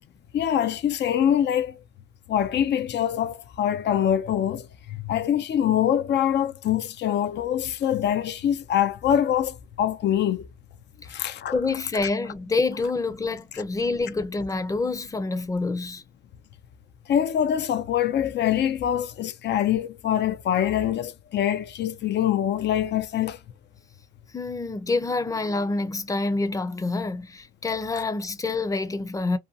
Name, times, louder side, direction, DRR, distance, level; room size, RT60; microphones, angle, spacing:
voice 1, 0.3-1.8 2.3-10.5 11.1-11.5 17.1-23.4, left 10 dB, 60° left, 0.5 m, -24 dB
voice 2, 11.5-16.0 24.3-29.4, left 3 dB, 15° left, 0.5 m, -27 dB
2.6 x 2.2 x 2.6 m
cardioid pair, 90°, 20 cm